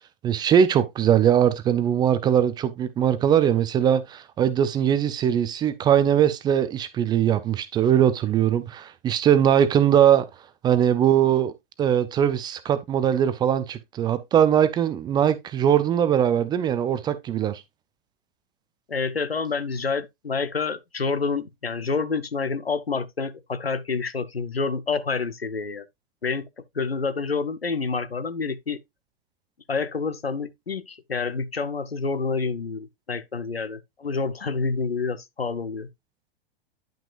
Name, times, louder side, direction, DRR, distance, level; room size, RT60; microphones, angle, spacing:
voice 1, 0.2-10.3 10.6-11.5 11.8-17.6, right 9 dB, 15° right, 0.4 m, -21 dB
voice 2, 18.9-25.8 26.2-26.5 26.7-28.8 29.7-35.9, left 4 dB, 85° left, 0.8 m, -28 dB
10.5 x 5.9 x 2.4 m
figure-of-eight pair, 100°, 30 cm